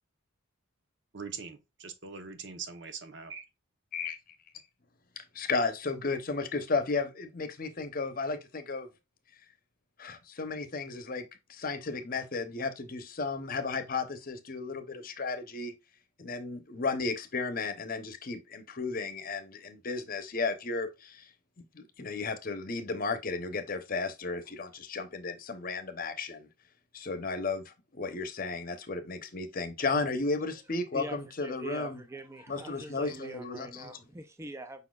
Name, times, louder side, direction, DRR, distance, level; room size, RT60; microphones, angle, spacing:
voice 1, 1.1-3.4, right 5 dB, 60° right, 1.0 m, -42 dB
voice 2, 5.2-8.9 10.0-15.7 16.2-21.3 21.6-26.5 26.9-32.0 32.5-33.9, left 3 dB, 45° left, 0.8 m, -34 dB
voice 3, 30.9-34.9, right 1 dB, 15° right, 0.5 m, -43 dB
5.6 x 4.0 x 2.4 m
head